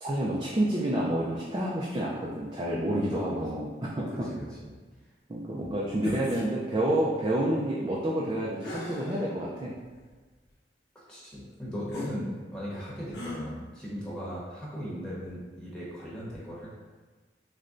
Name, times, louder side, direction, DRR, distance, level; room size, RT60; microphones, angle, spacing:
voice 1, 0.0-4.1 5.3-9.7, right 1 dB, 25° right, -5 dB, 0.4 m, -29 dB
voice 2, 3.1-3.4 4.1-4.7 5.5-5.7 11.1-16.7, equal, 5° left, -8 dB, 1.1 m, -38 dB
sound 1, 6.0-6.5 8.6-9.3 10.0-10.1 11.9-12.1 13.1-13.4, left 1 dB, 85° left, 0.8 m, -38 dB
6.4 x 2.2 x 2.5 m, 1.3 s
head